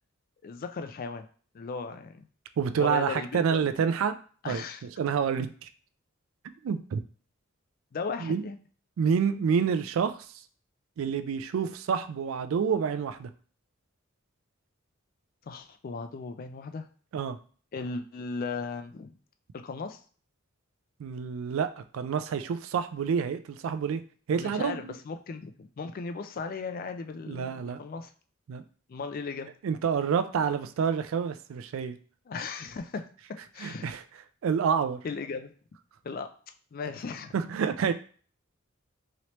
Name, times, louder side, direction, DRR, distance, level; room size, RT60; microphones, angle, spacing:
voice 1, 0.4-1.3 1.5-2.3 2.7-3.7 4.4-4.8 7.9-8.6 15.5-16.9 17.7-19.2 19.6-20.0 24.3-28.1 28.9-29.5 32.3-33.0 33.5-33.9 35.0-35.5 36.0-36.3 36.7-37.3, left 4 dB, 45° left, 8 dB, 0.3 m, -36 dB
voice 2, 2.6-4.1 4.4-4.6 5.0-5.7 6.6-7.0 8.2-8.4 9.0-10.1 11.0-13.3 17.1-17.4 21.0-24.0 24.3-24.9 27.3-27.8 28.5-28.6 29.6-32.0 33.6-34.0 34.4-35.0 37.3-37.9, right 6 dB, 75° right, 10 dB, 0.3 m, -28 dB
3.1 x 2.9 x 2.9 m, 0.43 s
head